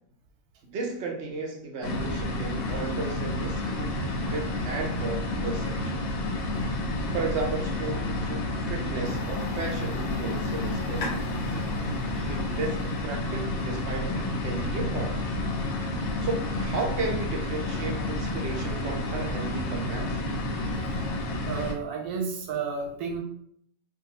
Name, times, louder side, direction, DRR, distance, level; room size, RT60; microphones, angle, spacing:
voice 1, 0.6-6.0 7.1-12.8 13.0-15.2 16.0-20.3, right 3 dB, 65° right, 1 dB, 0.7 m, -34 dB
sound 1, 1.8-21.7, left 2 dB, 90° left, 1.1 m, -30 dB
sound 2, 9.0-14.0, left 2 dB, 65° left, 0.8 m, -42 dB
voice 2, 21.5-23.2, right 5 dB, 85° right, 3 dB, 1.1 m, -31 dB
2.6 x 2.3 x 2.8 m, 0.69 s
omnidirectional pair, 1.6 m